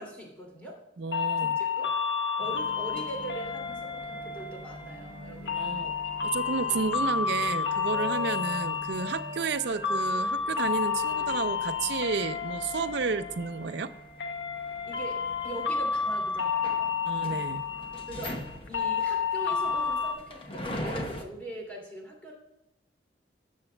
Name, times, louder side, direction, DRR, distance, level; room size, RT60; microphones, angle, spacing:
voice 1, 0.0-0.8 1.4-1.9 2.4-6.0 14.9-16.9 18.1-22.3, right 1 dB, 10° left, -2 dB, 2.4 m, -42 dB
voice 2, 1.0-1.6 5.6-5.9 6.2-13.9 17.0-17.7, right 4 dB, 65° right, 12 dB, 0.5 m, -31 dB
sound 1, 1.1-20.1, left 6 dB, 75° left, 0.8 m, -31 dB
sound 2, 2.4-21.2, left 1 dB, 30° left, 0.9 m, -44 dB
Wind instrument woodwind instrument, 4.8-8.7 9.0-13.3, equal, 20° right, 2.3 m, -46 dB
13.0 x 7.9 x 2.2 m, 0.89 s
head